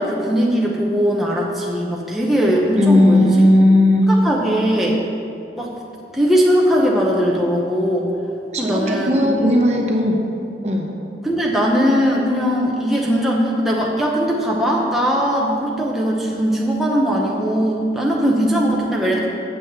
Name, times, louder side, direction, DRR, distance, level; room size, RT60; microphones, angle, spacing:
voice 1, 0.0-3.3 4.0-5.0 5.6-5.7 6.1-8.1 8.6-9.3 11.2-19.3, equal, ahead, -4 dB, 0.9 m, -19 dB
voice 2, 2.8-4.1 8.5-10.2 10.6-10.9, left 1 dB, 40° right, 0 dB, 1.1 m, -15 dB
8.0 x 6.3 x 6.9 m, 2.6 s
head